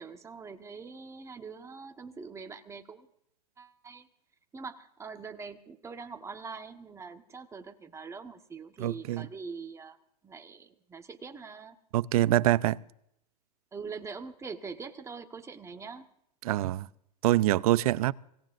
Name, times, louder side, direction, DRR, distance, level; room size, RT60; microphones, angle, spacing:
voice 1, 0.0-3.1 3.6-4.1 4.5-10.0 10.2-11.8 13.7-16.1, right 5 dB, 15° right, 1.4 m, -43 dB
voice 2, 8.8-9.2 11.9-12.8 16.4-16.9 17.2-18.1, right 15 dB, 65° right, 0.6 m, -25 dB
25.5 x 18.0 x 2.6 m
hypercardioid pair, 115°, 20 cm